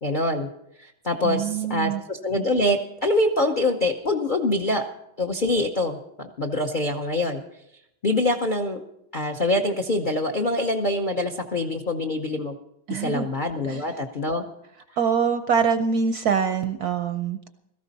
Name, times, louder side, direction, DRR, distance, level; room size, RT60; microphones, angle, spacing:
voice 1, 0.0-0.5 0.8-4.8 5.2-7.4 8.0-8.8 9.1-12.5 13.0-14.4, left 1 dB, 70° left, 4 dB, 0.4 m, -25 dB
voice 2, 1.2-2.0 12.9-13.3 13.7-13.8 15.0-17.5, right 6 dB, 70° right, 9 dB, 0.9 m, -24 dB
16.5 x 14.0 x 4.1 m, 0.80 s
omnidirectional pair, 2.2 m